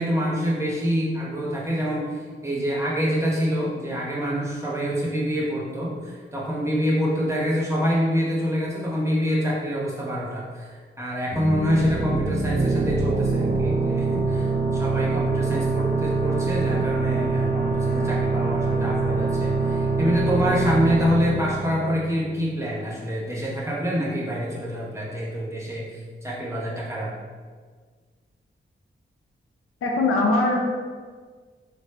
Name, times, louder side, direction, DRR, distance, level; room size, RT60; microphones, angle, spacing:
voice 1, 0.0-27.1, equal, 15° right, -5 dB, 1.3 m, -26 dB
sound 1, 11.3-22.7, right 3 dB, 45° right, 0.7 m, -24 dB
voice 2, 29.8-30.6, left 2 dB, 85° left, 0 dB, 0.6 m, -21 dB
3.9 x 3.4 x 3.2 m, 1.5 s
cardioid pair, 55°, 21 cm